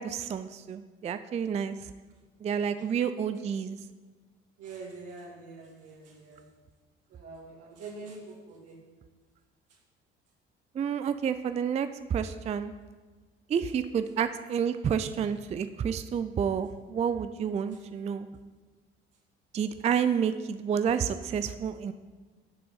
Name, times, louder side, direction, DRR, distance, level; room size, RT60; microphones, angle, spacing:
voice 1, 0.0-1.8 2.4-3.8 10.7-12.7 13.5-18.3 19.5-21.9, right 7 dB, 20° right, 11 dB, 0.4 m, -29 dB
voice 2, 2.6-2.9 4.6-6.5 7.1-8.8, right 3 dB, 55° right, -3 dB, 2.0 m, -45 dB
9.0 x 6.8 x 5.6 m, 1.4 s
figure-of-eight pair, 50°, 30 cm